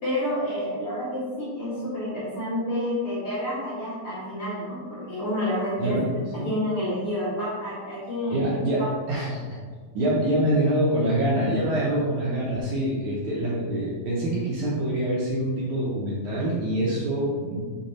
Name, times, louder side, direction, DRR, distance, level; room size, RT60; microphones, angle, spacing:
voice 1, 0.0-6.0 6.3-8.6, left 1 dB, 45° left, -10 dB, 1.9 m, -29 dB
voice 2, 5.8-6.1 6.4-6.5 8.3-9.4 9.9-17.6, right 1 dB, 70° right, -6 dB, 1.9 m, -25 dB
6.8 x 3.4 x 4.2 m, 1.5 s
omnidirectional pair, 4.3 m